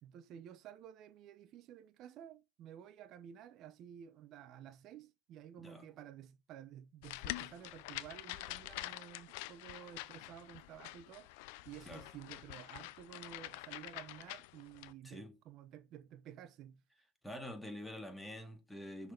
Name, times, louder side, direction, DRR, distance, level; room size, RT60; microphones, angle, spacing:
voice 1, 0.0-16.8, right 10 dB, 45° right, 0.7 m, -53 dB
sound 1, 7.0-14.9, left 18 dB, 65° left, 0.5 m, -46 dB
voice 2, 15.0-15.4 17.2-19.1, left 1 dB, 5° left, 2.0 m, -46 dB
6.3 x 4.1 x 5.3 m
supercardioid pair, 110°, 0 cm